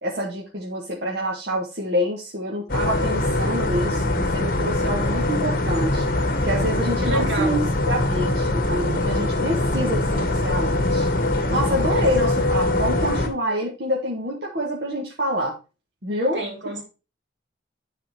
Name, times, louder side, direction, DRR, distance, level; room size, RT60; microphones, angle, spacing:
voice 1, 0.0-6.0 6.4-11.1 11.5-15.5 16.0-16.4, equal, 60° right, -2 dB, 1.5 m, -27 dB
sound 1, 2.7-13.3, left 2 dB, 50° left, 1.1 m, -22 dB
voice 2, 7.0-7.6 11.9-12.3 16.3-16.8, right 1 dB, 80° right, 2 dB, 2.7 m, -29 dB
9.6 x 4.1 x 4.3 m, 0.30 s
head